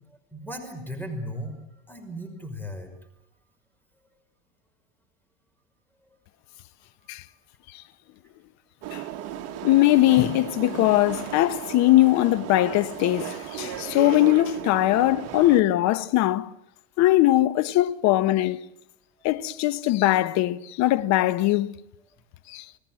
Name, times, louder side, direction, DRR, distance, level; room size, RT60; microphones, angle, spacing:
voice 1, 0.3-1.6 1.9-2.9, equal, 5° left, 5.7 m, -36 dB
sound 1, 8.8-15.6, right 12 dB, 50° right, 1.6 m, -35 dB
voice 2, 9.6-16.5 17.0-18.6 19.2-21.8 22.5-22.6, left 15 dB, 55° left, 1.2 m, -21 dB
29.5 x 18.5 x 7.7 m
supercardioid pair, 110°, 32 cm